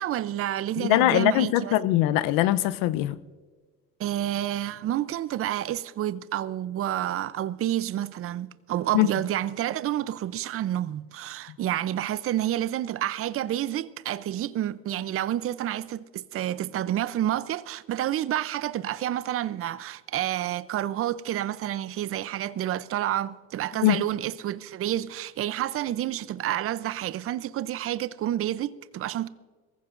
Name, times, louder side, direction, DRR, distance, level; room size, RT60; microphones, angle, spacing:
voice 1, 0.0-1.7 4.0-29.3, right 12 dB, 40° right, 0.6 m, -29 dB
voice 2, 0.8-3.2 8.9-9.1 23.8-24.0, left 15 dB, 70° left, 0.8 m, -22 dB
22.5 x 15.0 x 2.6 m
supercardioid pair, 90°, 35 cm